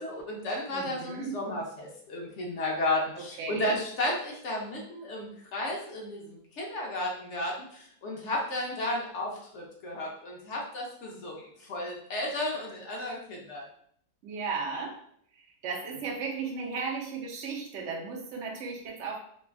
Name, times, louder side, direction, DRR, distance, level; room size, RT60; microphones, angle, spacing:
voice 1, 0.0-13.6, left 1 dB, 60° left, -1 dB, 0.9 m, -33 dB
voice 2, 0.7-1.4 3.2-3.8 14.2-15.0 15.3-19.2, right 5 dB, 65° right, 0 dB, 0.8 m, -35 dB
3.3 x 2.2 x 2.2 m, 0.66 s
omnidirectional pair, 1.5 m